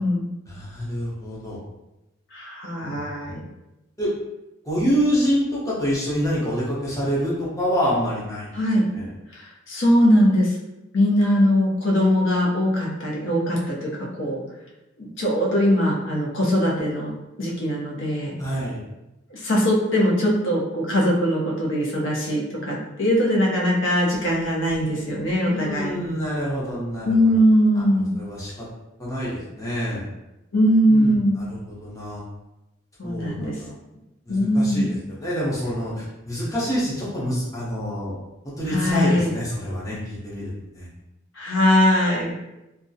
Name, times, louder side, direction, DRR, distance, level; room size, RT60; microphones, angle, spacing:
voice 1, 0.5-1.6 2.8-3.3 4.0-4.1 4.6-8.5 8.9-9.1 18.4-18.8 25.4-27.2 28.2-28.5 29.0-30.0 30.9-31.5 31.8-32.2 33.0-33.7 34.3-34.9 35.2-38.2 38.6-40.9, equal, 15° left, -6 dB, 0.7 m, -26 dB
voice 2, 2.3-3.4 8.5-8.9 9.3-10.6 10.9-14.4 15.0-18.3 19.3-26.0 27.0-28.1 30.5-31.4 33.0-33.6 34.3-34.9 38.7-39.3 41.3-42.3, equal, 70° left, -3 dB, 0.6 m, -21 dB
2.3 x 2.0 x 2.6 m, 0.97 s
head